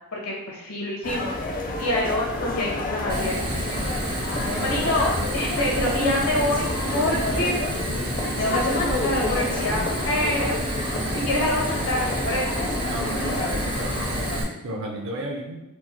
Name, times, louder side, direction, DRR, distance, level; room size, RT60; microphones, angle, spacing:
voice 1, 0.1-1.3 1.6-4.2 4.6-7.5 8.3-10.6 11.1-12.7, left 1 dB, 85° left, -3 dB, 1.4 m, -27 dB
sound 1, 1.0-14.4, left 2 dB, 40° left, 0.5 m, -29 dB
Fire, 3.1-14.4, right 1 dB, 85° right, 1.4 m, -30 dB
voice 2, 4.4-4.8 12.8-14.3 14.6-15.6, right 1 dB, 60° right, 2 dB, 0.5 m, -33 dB
4.4 x 2.0 x 4.3 m, 0.96 s
head